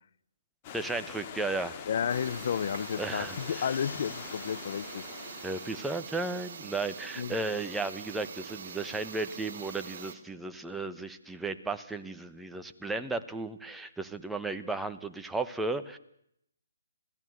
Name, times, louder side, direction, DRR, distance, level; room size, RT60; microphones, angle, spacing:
Stream / Liquid, 0.6-6.0, left 8 dB, 30° left, 2.6 m, -44 dB
voice 1, 0.7-1.8 3.0-3.7 5.4-16.0, right 3 dB, 5° right, 1.2 m, -34 dB
voice 2, 1.9-5.0 7.2-7.4, left 8 dB, 50° left, 0.8 m, -32 dB
sound 1, 2.1-10.1, right 6 dB, 45° right, 2.9 m, -44 dB
cymbal roll loud, 2.3-6.7, left 4 dB, 75° left, 2.7 m, -52 dB
26.5 x 17.0 x 8.1 m
hypercardioid pair, 150°, 0 cm